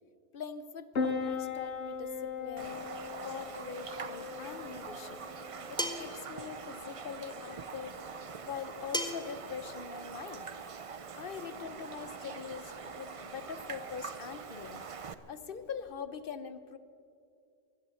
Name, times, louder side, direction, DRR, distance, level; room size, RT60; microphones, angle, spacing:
voice 1, 0.3-2.8 3.2-5.2 5.7-7.9 8.4-10.5 11.2-14.8 15.3-16.8, left 6 dB, 55° left, 12 dB, 1.0 m, -43 dB
Piano, 0.9-15.9, left 5 dB, 85° left, 1.3 m, -42 dB
Raindrop, 2.6-15.1, right 5 dB, 40° right, 0.6 m, -44 dB
sound 1, 5.8-6.2 8.9-9.3, equal, 5° left, 1.0 m, -33 dB
16.0 x 11.5 x 7.8 m, 2.4 s
omnidirectional pair, 1.1 m